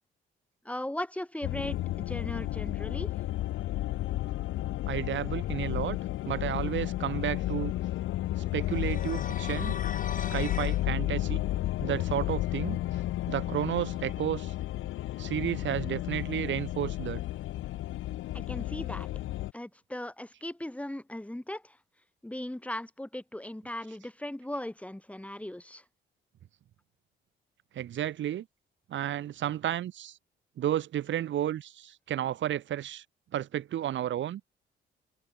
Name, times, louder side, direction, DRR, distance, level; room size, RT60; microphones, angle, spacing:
voice 1, 0.6-3.1 18.3-19.1 19.5-21.8 22.2-25.8, left 1 dB, 5° left, 7.8 m, -38 dB
sound 1, 1.4-19.5, left 15 dB, 85° left, 4.5 m, -32 dB
voice 2, 4.9-6.0 6.3-7.7 8.5-9.8 10.3-11.4 11.8-13.0 13.3-14.5 15.2-17.2 27.7-28.4 28.9-30.2 30.6-33.0 33.3-34.4, right 11 dB, 70° right, 2.9 m, -32 dB
sound 2, 8.6-10.8, left 6 dB, 40° left, 3.6 m, -40 dB
cardioid pair, 90°, 20 cm